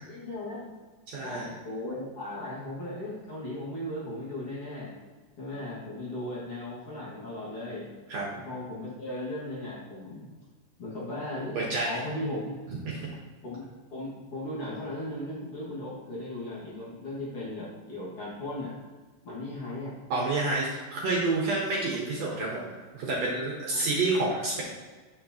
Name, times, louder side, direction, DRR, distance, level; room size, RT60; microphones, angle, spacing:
voice 1, 0.1-0.7 1.2-4.9 5.4-7.9 8.5-10.3 10.8-12.6 13.4-13.6 13.9-18.7 19.2-19.9 23.7-23.8, left 1 dB, 45° left, -7 dB, 2.5 m, -37 dB
voice 2, 1.1-1.5 8.1-8.3 11.5-12.0 12.7-13.1 20.1-24.6, right 2 dB, 60° right, -3 dB, 2.0 m, -29 dB
8.5 x 6.8 x 2.9 m, 1.4 s
omnidirectional pair, 4.0 m